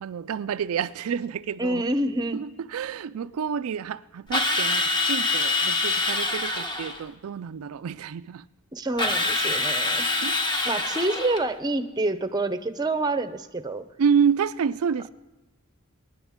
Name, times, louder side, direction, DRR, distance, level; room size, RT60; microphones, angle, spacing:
voice 1, 0.0-1.8 2.3-8.5 10.2-10.7 14.0-15.1, right 7 dB, 80° right, 0.4 m, -28 dB
voice 2, 1.6-2.4 8.7-10.0 10.6-13.9, right 2 dB, 20° right, 0.7 m, -27 dB
Drill, 4.3-7.0 9.0-11.5, left 2 dB, 20° left, 1.1 m, -25 dB
23.5 x 10.5 x 3.6 m
head